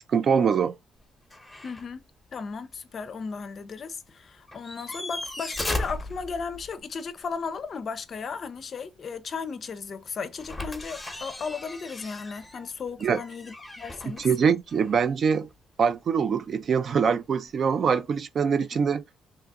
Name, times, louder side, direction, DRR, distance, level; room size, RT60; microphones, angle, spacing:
voice 1, 0.1-0.7 13.0-13.2 14.1-15.5 15.8-19.0, right 6 dB, 55° right, 0.3 m, -24 dB
sound 1, 1.3-1.9 2.3-2.4 4.5-6.8 10.4-15.2 17.3-17.4, left 1 dB, 10° left, 0.8 m, -37 dB
voice 2, 1.6-2.0 2.3-14.3, left 5 dB, 50° left, 0.5 m, -35 dB
3.0 x 2.4 x 3.4 m
cardioid pair, 90°, 0 cm